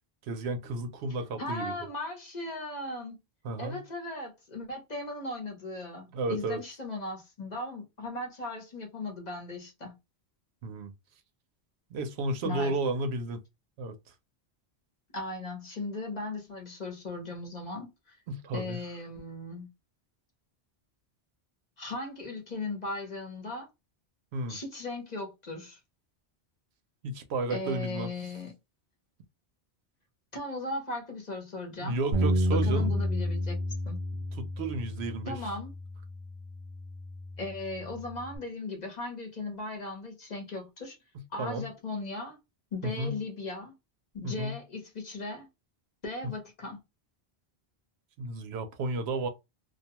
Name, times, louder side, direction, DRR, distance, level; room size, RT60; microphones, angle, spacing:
voice 1, 0.3-1.7 3.4-3.8 6.1-6.6 10.6-10.9 11.9-13.4 13.8-14.0 18.3-18.8 24.3-24.6 27.0-28.1 31.8-32.9 34.4-35.4 41.1-41.7 42.8-43.2 44.2-44.5 48.2-49.3, right 2 dB, 85° right, 0.9 m, -32 dB
voice 2, 1.4-3.2 3.6-9.9 12.4-12.7 15.1-18.2 18.5-19.7 21.8-23.7 24.5-25.8 27.5-28.5 30.3-32.0 32.6-33.6 33.9-34.0 35.3-35.7 37.4-41.0 41.3-42.4 42.7-43.7 44.1-45.5 46.0-46.8, left 2 dB, 45° left, 0.9 m, -37 dB
Bass guitar, 32.1-38.4, equal, 60° right, 0.6 m, -31 dB
2.4 x 2.2 x 2.8 m
omnidirectional pair, 1.1 m